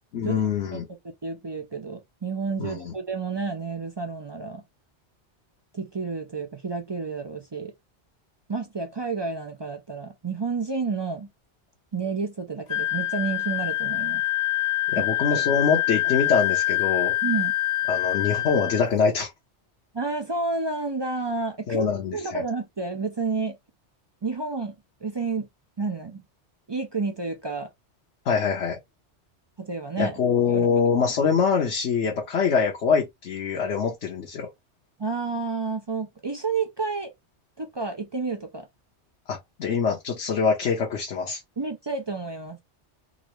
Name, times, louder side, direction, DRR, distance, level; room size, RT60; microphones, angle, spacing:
voice 1, 0.1-0.9 2.6-2.9 14.9-17.2 17.9-19.3 21.7-22.4 28.2-28.8 30.0-34.5 39.3-41.4, left 6 dB, 75° left, 1.1 m, -24 dB
voice 2, 1.2-4.6 5.7-7.7 8.5-11.3 11.9-14.2 14.9-15.0 15.3-15.4 17.2-17.5 19.9-21.9 22.1-23.6 24.2-24.7 25.0-25.5 25.8-26.2 26.7-27.7 29.6-30.2 30.5-30.7 35.0-37.1 37.6-38.7 41.6-42.6, right 4 dB, 40° right, 0.3 m, -30 dB
Wind instrument woodwind instrument, 12.7-18.9, left 15 dB, 45° left, 0.9 m, -25 dB
3.8 x 2.0 x 3.0 m
omnidirectional pair, 1.2 m